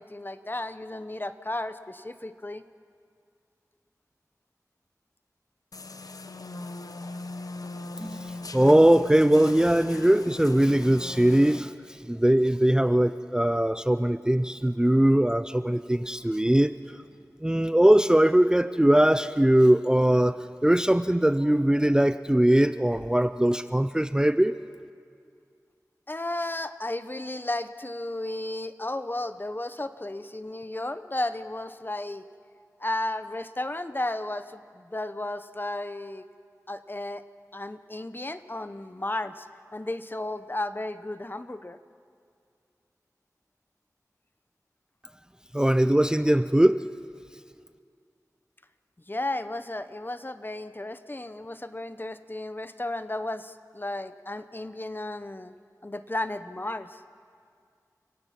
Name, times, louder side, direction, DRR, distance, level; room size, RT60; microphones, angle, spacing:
voice 1, 0.0-2.6 26.1-32.2 32.8-36.2 36.7-37.2 37.5-39.5 39.7-41.8 49.1-55.5 55.8-57.0, left 1 dB, 35° left, 11 dB, 0.8 m, -34 dB
sound 1, 5.7-11.6, left 2 dB, 75° left, 0.8 m, -39 dB
voice 2, 8.0-16.8 17.4-24.5 45.5-46.8, right 1 dB, 10° right, 12 dB, 0.4 m, -21 dB
30.0 x 17.0 x 5.9 m, 2.3 s
wide cardioid pair, 60°, 6 cm